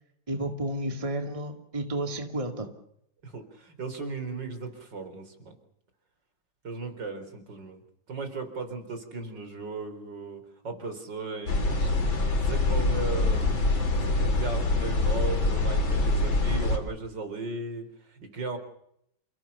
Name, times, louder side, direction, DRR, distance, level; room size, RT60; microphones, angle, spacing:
voice 1, 0.3-2.7, right 1 dB, 15° right, 6 dB, 2.3 m, -31 dB
voice 2, 3.2-5.6 6.6-7.8 8.1-11.9 12.3-13.6 14.0-18.6, right 3 dB, 60° right, 8 dB, 4.6 m, -36 dB
sound 1, 11.5-16.8, left 2 dB, 75° left, 4.3 m, -25 dB
28.5 x 17.5 x 6.9 m, 0.72 s
omnidirectional pair, 2.1 m